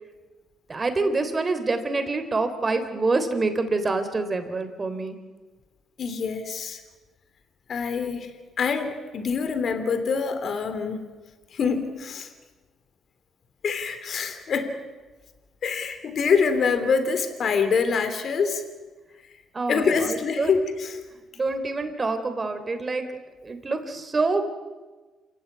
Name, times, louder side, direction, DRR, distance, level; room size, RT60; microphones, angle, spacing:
voice 1, 0.7-5.2 19.5-20.5 21.4-23.1 23.4-24.4, right 3 dB, 30° right, 8 dB, 3.5 m, -26 dB
voice 2, 6.0-6.8 7.7-8.3 8.6-11.0 11.5-12.3 13.6-14.7 15.6-18.6 19.7-21.0, left 5 dB, 55° left, 9 dB, 3.3 m, -25 dB
28.5 x 16.5 x 9.6 m, 1.3 s
cardioid pair, 90°, 0 cm